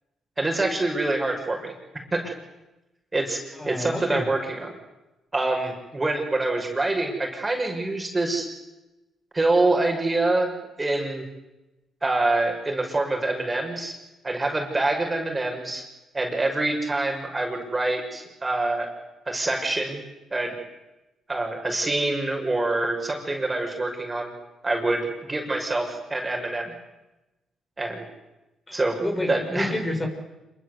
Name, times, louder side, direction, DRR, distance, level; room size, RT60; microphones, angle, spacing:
voice 1, 0.4-1.7 2.1-2.3 3.1-4.7 5.3-8.5 9.3-10.5 10.8-11.2 12.0-13.9 14.2-15.8 16.1-18.9 19.3-20.0 20.3-20.5 21.3-24.3 24.6-26.7 27.8-28.0 28.7-29.0 29.3-29.7, right 2 dB, 20° right, 3 dB, 6.1 m, -25 dB
voice 2, 3.5-4.3 28.7-30.1, left 1 dB, 20° left, 3 dB, 6.0 m, -29 dB
27.0 x 23.5 x 8.2 m, 1.0 s
cardioid pair, 90°, 0 cm